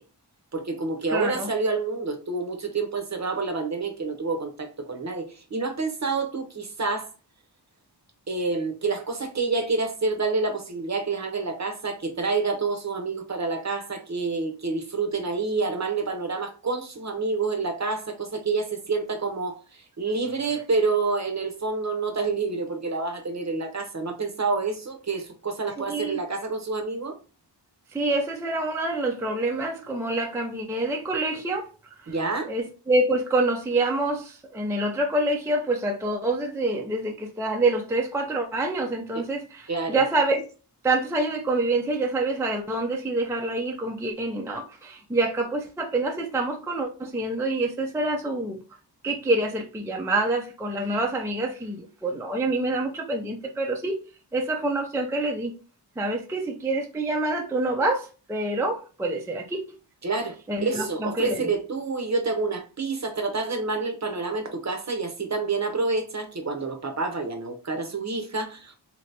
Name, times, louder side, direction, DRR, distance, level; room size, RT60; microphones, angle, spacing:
voice 1, 0.5-7.1 8.3-27.2 32.1-32.5 39.1-39.2 39.7-40.0 60.0-60.4 60.6-68.7, right 3 dB, 40° right, 0.7 m, -28 dB
voice 2, 1.1-1.5 25.8-26.2 27.9-31.7 32.0-32.1 32.5-40.4 40.8-48.6 49.0-54.0 54.3-55.5 56.0-59.6 60.5-61.5, right 2 dB, 5° right, 0.4 m, -26 dB
3.2 x 2.8 x 2.7 m
wide cardioid pair, 90°, 43 cm